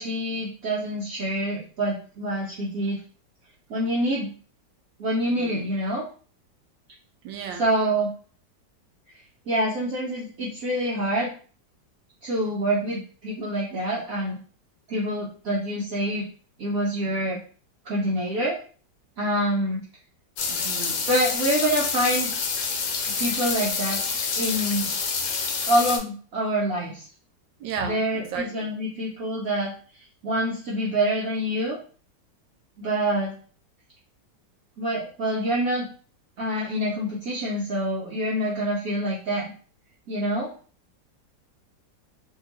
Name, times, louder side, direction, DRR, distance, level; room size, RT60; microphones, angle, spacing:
voice 1, 0.0-3.0 3.7-4.3 5.0-6.0 7.6-8.1 9.5-11.3 12.2-14.4 14.9-16.2 16.6-17.4 17.8-18.6 19.2-19.8 21.1-22.3 23.1-24.0 24.4-24.9 25.7-27.1 27.8-29.7 30.2-31.8 32.8-33.3 34.8-35.9 36.4-39.5 40.1-40.5, right 1 dB, 60° right, 1.0 m, -26 dB
voice 2, 5.3-5.7 7.2-7.7 20.5-21.0 27.6-28.5, right 5 dB, 85° right, 1.3 m, -34 dB
sound 1, 20.4-26.0, left 5 dB, 70° left, 1.2 m, -27 dB
2.8 x 2.8 x 2.9 m
omnidirectional pair, 2.0 m